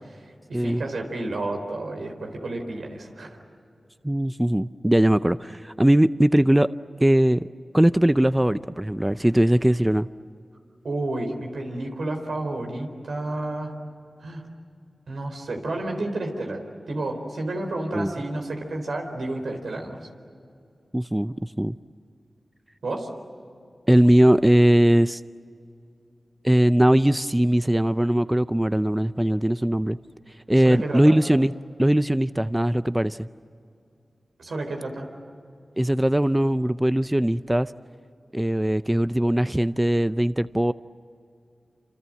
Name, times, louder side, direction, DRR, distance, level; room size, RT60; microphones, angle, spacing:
voice 1, 0.0-3.4 10.8-13.7 14.2-14.4 15.1-16.6 16.9-20.0 22.8-23.1 30.6-31.2 34.4-35.1, right 2 dB, 85° right, 3 dB, 4.2 m, -31 dB
voice 2, 4.0-6.7 7.0-7.5 7.7-10.1 17.9-18.1 20.9-21.8 23.9-25.2 26.4-30.0 30.5-31.5 31.8-33.3 35.8-37.7 38.3-40.7, right 1 dB, 15° right, 13 dB, 0.6 m, -20 dB
28.0 x 27.0 x 7.7 m, 2.4 s
cardioid pair, 45°, 0 cm